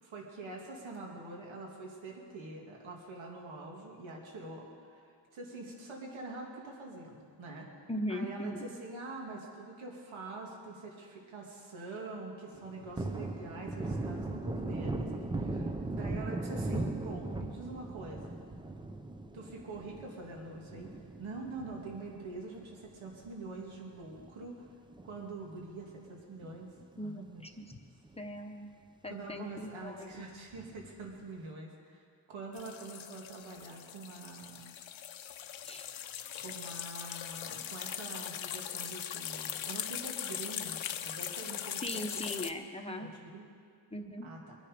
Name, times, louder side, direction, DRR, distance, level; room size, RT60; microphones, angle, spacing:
voice 1, 0.0-7.7 8.1-18.4 19.3-20.9 21.2-24.7 25.0-27.4 29.1-34.8 36.4-42.2 43.0-43.5 44.2-44.6, right 3 dB, 90° right, -1 dB, 2.3 m, -45 dB
voice 2, 7.9-8.7 27.0-27.8 28.2-28.7 29.0-30.1 35.6-35.9 41.8-43.1 43.9-44.3, equal, 15° left, 3 dB, 0.8 m, -39 dB
Thunder, 12.5-23.3 23.6-23.7 24.1-25.6 25.9-26.0 26.4-27.2 27.6-27.7 28.0-28.1 30.5-31.1, right 2 dB, 10° right, 0.4 m, -39 dB
sound 1, 32.5-42.5, left 10 dB, 85° left, 0.8 m, -40 dB
23.5 x 10.0 x 5.1 m, 2.2 s
wide cardioid pair, 175°, 46 cm